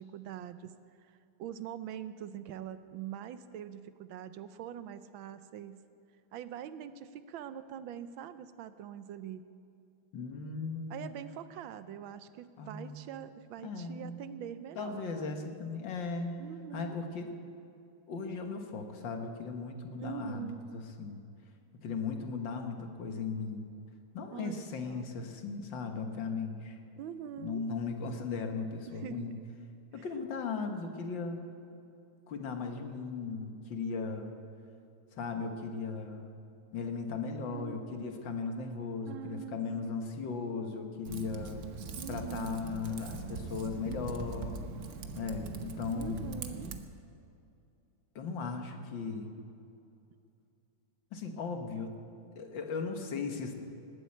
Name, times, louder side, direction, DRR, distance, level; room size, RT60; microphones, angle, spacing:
voice 1, 0.0-5.8 6.3-9.4 10.9-15.5 16.4-17.0 20.0-20.8 24.3-25.1 27.0-27.6 28.9-29.3 29.9-30.1 37.5-38.3 39.1-40.0 41.9-42.6 46.0-46.7, right 9 dB, 75° right, 12 dB, 1.3 m, -44 dB
voice 2, 10.1-11.1 12.6-13.1 13.6-14.2 14.8-16.4 16.7-17.3 18.1-21.2 21.8-23.7 24.1-26.8 27.4-29.4 29.9-31.4 32.3-34.4 35.2-36.3 36.7-41.6 42.1-44.6 45.2-46.3 48.2-49.3 51.1-52.0 52.4-53.6, left 4 dB, 65° left, 5 dB, 1.9 m, -37 dB
Typing, 41.0-46.8, right 4 dB, 55° right, 1.2 m, -41 dB
19.5 x 8.7 x 8.4 m, 2.6 s
omnidirectional pair, 2.3 m